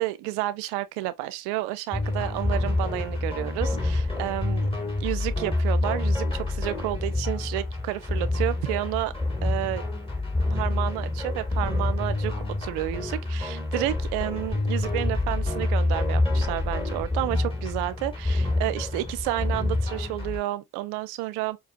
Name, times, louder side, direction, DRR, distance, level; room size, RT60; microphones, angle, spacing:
voice 1, 0.0-4.7 5.0-9.1 9.4-9.8 10.5-12.3 12.6-21.6, right 16 dB, 85° right, 0.6 m, -30 dB
sound 1, 1.9-20.4, left 2 dB, 15° left, 2.3 m, -27 dB
5.0 x 2.3 x 2.6 m
hypercardioid pair, 50°, 38 cm